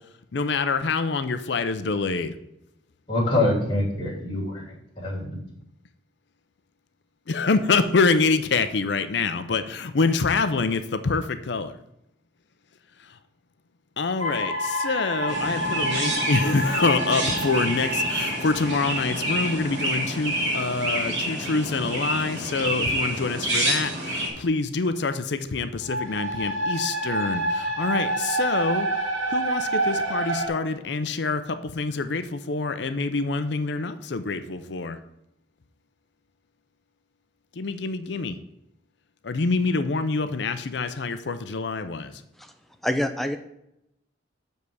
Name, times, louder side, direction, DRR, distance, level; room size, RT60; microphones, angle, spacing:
voice 1, 0.3-2.3 7.3-11.7 14.0-28.9 29.3-35.0 37.6-38.4 39.2-42.1, left 4 dB, 60° left, 10 dB, 0.5 m, -26 dB
voice 2, 3.1-5.4, left 1 dB, 25° left, -6 dB, 3.1 m, -25 dB
sound 1, 14.2-21.8 25.8-30.5, right 1 dB, 85° right, 2.2 m, -29 dB
Chirp tweet, 15.3-24.3, right 1 dB, 65° right, 2.9 m, -28 dB
voice 3, 42.8-43.4, left 1 dB, ahead, 6 dB, 0.5 m, -25 dB
6.7 x 5.4 x 6.2 m, 0.81 s
head